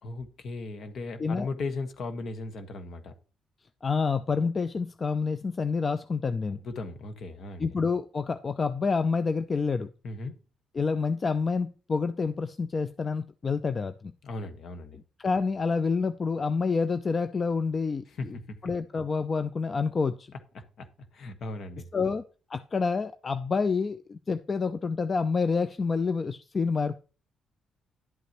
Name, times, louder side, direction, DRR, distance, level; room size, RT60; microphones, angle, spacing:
voice 1, 0.0-3.1 6.6-7.8 10.0-10.4 14.2-15.0 18.1-18.7 20.5-20.9 21.1-22.1, left 3 dB, 60° left, 1.4 m, -37 dB
voice 2, 3.8-6.6 7.6-9.9 10.8-14.1 15.2-18.0 18.6-20.3 21.9-22.2 22.5-27.0, left 4 dB, 35° left, 0.5 m, -28 dB
11.0 x 8.3 x 3.0 m
cardioid pair, 90°, 0 cm